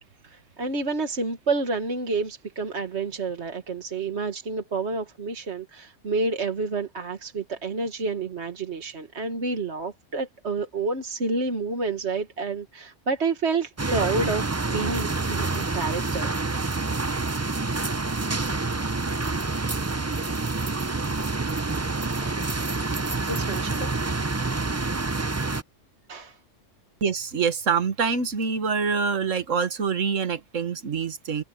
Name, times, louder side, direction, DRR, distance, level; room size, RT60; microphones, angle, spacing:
voice 1, 0.2-16.3 22.2-22.4 23.2-24.0 26.1-26.4, right 3 dB, 60° right, 1.9 m, -29 dB
sound 1, 13.8-25.6, right 3 dB, 20° right, 0.4 m, -27 dB
voice 2, 27.0-31.4, right 6 dB, 85° right, 1.8 m, -25 dB
omnidirectional pair, 1.3 m